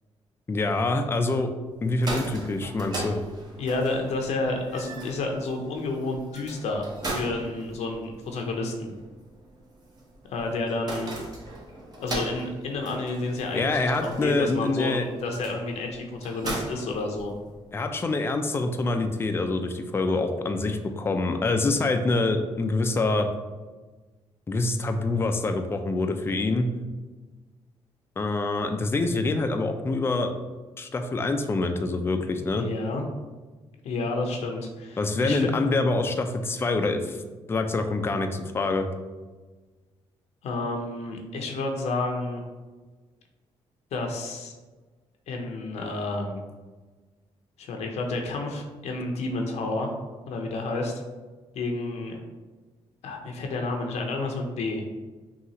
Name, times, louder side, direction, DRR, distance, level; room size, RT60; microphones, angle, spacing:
voice 1, 0.5-1.5 1.8-3.2 13.5-15.1 17.7-23.3 24.5-26.7 28.2-30.3 30.8-32.7 35.0-37.2 37.5-38.9, left 2 dB, 20° left, 6 dB, 0.4 m, -25 dB
sound 1, 1.8-17.7, right 2 dB, 40° right, 0.9 m, -39 dB
voice 2, 3.6-8.9 10.3-11.1 12.0-17.3 32.4-33.0 33.8-35.6 40.4-42.4 43.9-44.5 45.3-46.4 47.6-49.9 50.3-50.9 51.5-52.2 53.0-54.8, left 2 dB, 80° left, 2 dB, 0.6 m, -30 dB
5.5 x 2.4 x 2.9 m, 1.3 s
cardioid pair, 105°, 11 cm